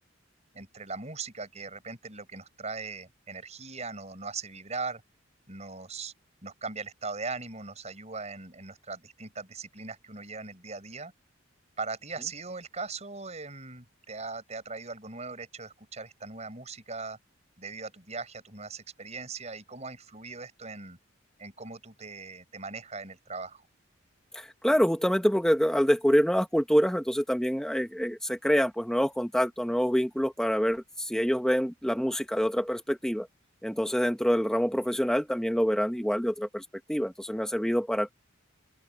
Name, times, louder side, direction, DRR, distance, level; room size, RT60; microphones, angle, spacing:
voice 1, 0.5-5.0 5.5-6.1 6.4-11.1 11.8-17.2 17.6-21.0 21.4-23.6, right 4 dB, 35° right, 5.7 m, -39 dB
voice 2, 24.3-33.3 33.6-38.1, equal, 5° left, 1.3 m, -26 dB
open air
head